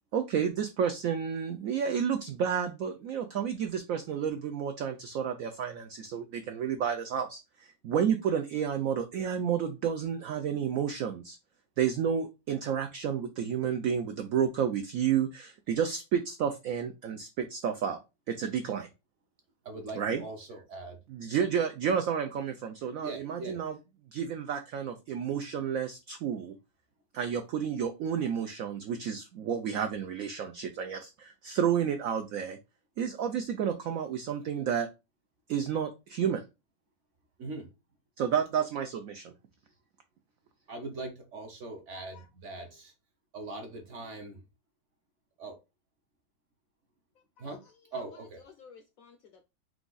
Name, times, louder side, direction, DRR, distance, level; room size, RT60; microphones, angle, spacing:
voice 1, 0.1-11.4 11.8-18.0 18.3-18.9 20.0-20.2 21.1-23.8 24.1-26.5 27.1-32.6 33.0-34.9 35.5-36.4 38.2-39.3, right 8 dB, 85° right, 0.7 m, -31 dB
voice 2, 19.6-21.0 23.0-23.6 37.4-37.7 40.7-42.9 43.3-44.4 45.4-45.5 47.4-47.6 47.9-48.4, right 2 dB, 55° right, 0.9 m, -41 dB
voice 3, 41.9-42.3 42.6-42.8 47.2-49.5, left 6 dB, 70° left, 0.8 m, -55 dB
4.7 x 2.4 x 3.9 m
omnidirectional pair, 2.0 m